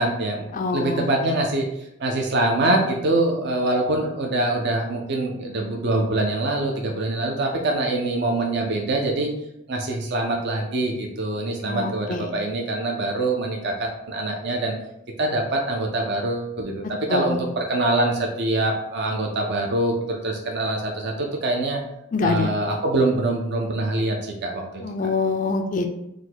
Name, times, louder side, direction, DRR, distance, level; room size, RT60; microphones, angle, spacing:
voice 1, 0.0-0.5 0.7-9.3 9.7-14.7 15.2-16.8 17.1-21.8 22.2-24.8, right 2 dB, 50° right, 1 dB, 0.6 m, -24 dB
voice 2, 0.5-1.4 11.6-12.3 17.1-17.4 22.1-22.5 24.8-26.0, left 3 dB, 35° left, 6 dB, 0.3 m, -25 dB
4.7 x 2.2 x 3.9 m, 0.81 s
head